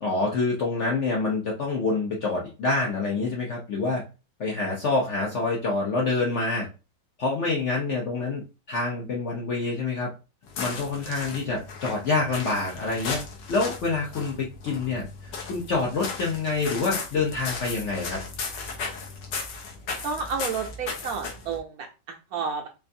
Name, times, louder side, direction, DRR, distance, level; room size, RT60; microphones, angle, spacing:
voice 1, 0.0-4.0 4.4-6.7 7.2-8.4 8.7-10.1 10.6-13.2 13.5-18.2, left 3 dB, 60° left, -2 dB, 0.7 m, -27 dB
sound 1, 10.4-21.6, left 4 dB, 80° left, 1.5 m, -36 dB
voice 2, 20.0-22.7, right 5 dB, 70° right, 2 dB, 0.9 m, -31 dB
4.5 x 2.5 x 2.6 m, 0.31 s
omnidirectional pair, 1.9 m